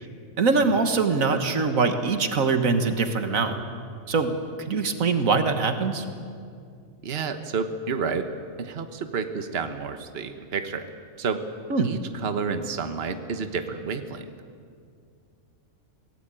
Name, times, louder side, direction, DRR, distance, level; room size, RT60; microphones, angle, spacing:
voice 1, 0.4-3.6 4.1-4.4 4.7-6.1 11.7-12.0, right 4 dB, 85° right, 7 dB, 1.9 m, -23 dB
voice 2, 7.0-8.3 8.6-10.9 11.2-11.4 11.8-14.3, right 5 dB, 50° right, 8 dB, 1.4 m, -30 dB
24.0 x 17.5 x 9.1 m, 2.3 s
omnidirectional pair, 1.4 m